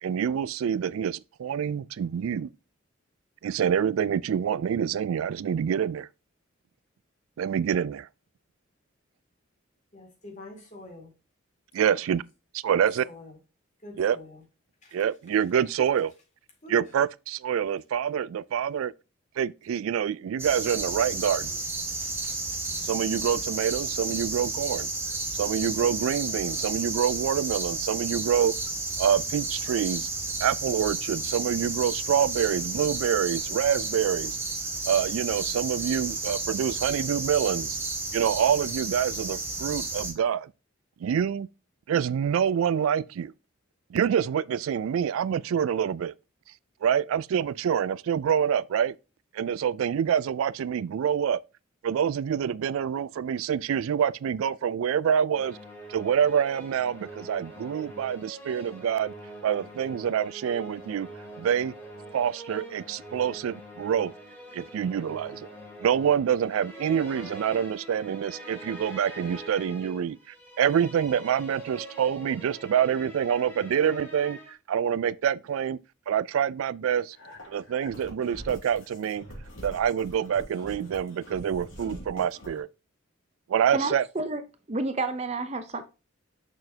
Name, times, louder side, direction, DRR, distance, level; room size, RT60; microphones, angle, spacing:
voice 1, 0.0-2.5 3.4-6.1 7.4-8.1 11.7-12.2 12.5-13.0 14.0-14.2 14.9-16.1 16.7-18.9 19.4-21.6 22.8-24.9 25.3-28.5 29.0-30.1 30.4-34.4 34.9-37.8 38.1-40.5 41.0-41.5 41.9-43.3 43.9-46.1 46.8-48.9 49.3-51.4 51.8-55.6 55.9-59.1 59.4-61.1 61.4-61.7 62.1-64.1 64.5-65.5 65.8-75.8 76.1-77.2 77.5-79.2 79.6-82.7 83.5-84.0, right 8 dB, 85° right, 0.3 m, -26 dB
voice 2, 9.9-11.1 12.0-12.2 12.7-13.4 13.8-14.4 14.8-15.1 16.6-17.0, left 2 dB, 35° left, 2.5 m, -46 dB
sound 1, 20.4-40.1, right 3 dB, 10° right, 1.3 m, -32 dB
sound 2, 55.3-74.5, right 1 dB, 10° left, 2.2 m, -44 dB
sound 3, 77.1-82.6, equal, 70° left, 2.9 m, -44 dB
voice 3, 83.7-84.4 84.7-85.8, right 3 dB, 30° right, 0.6 m, -30 dB
6.6 x 6.1 x 2.8 m
head